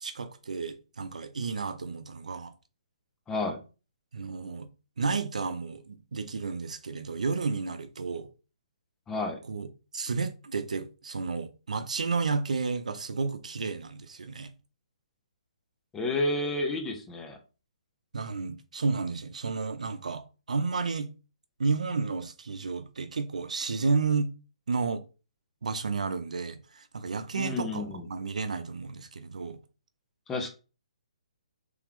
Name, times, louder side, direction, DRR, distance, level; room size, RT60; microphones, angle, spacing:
voice 1, 0.0-2.5 4.1-4.7 5.0-8.3 9.4-9.7 9.9-14.5 18.1-21.1 21.6-24.3 24.7-25.0 25.6-29.6, right 4 dB, 90° right, 0.6 m, -32 dB
voice 2, 3.3-3.6 9.1-9.4 15.9-17.4 27.3-28.1 30.3-30.5, left 2 dB, 10° left, 0.6 m, -30 dB
3.4 x 3.1 x 3.6 m
hypercardioid pair, 165°, 4 cm